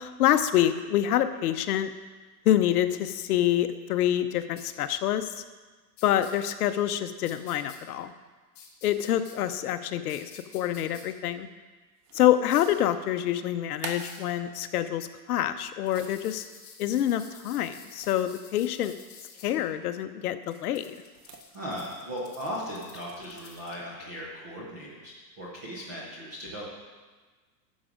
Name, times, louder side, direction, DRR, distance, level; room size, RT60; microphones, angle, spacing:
voice 1, 0.0-1.9 2.4-5.4 6.0-8.1 8.8-11.5 12.1-16.4 16.8-18.9 19.4-21.0, left 11 dB, 60° left, 10 dB, 0.8 m, -26 dB
sound 1, 4.6-4.7 6.0-6.3 7.2-7.8 8.5-9.4 10.1-11.0 12.5-12.8 13.9-14.3 15.9-19.5 20.5-23.8, left 6 dB, 25° left, 1.7 m, -50 dB
sound 2, 12.0-12.6 13.5-15.0 15.5-16.3 17.8-18.3 18.6-18.8 19.4-19.7 21.0-21.5, right 5 dB, 65° right, 1.6 m, -45 dB
voice 2, 21.5-26.7, equal, 10° right, -5 dB, 0.3 m, -37 dB
11.0 x 7.2 x 5.1 m, 1.3 s
supercardioid pair, 155°, 50 cm